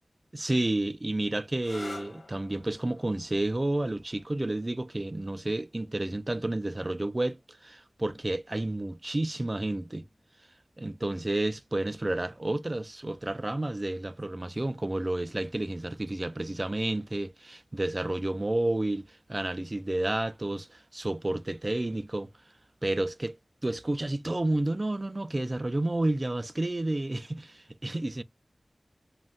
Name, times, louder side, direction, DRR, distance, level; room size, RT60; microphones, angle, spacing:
voice 1, 0.3-10.0 10.8-22.3 22.8-23.4 23.6-28.2, right 1 dB, 35° right, 0.3 m, -30 dB
sound 1, 1.5-9.0 10.0-10.5 14.0-14.4, left 2 dB, 80° left, 0.4 m, -51 dB
2.5 x 2.2 x 3.4 m
wide cardioid pair, 45°, 0 cm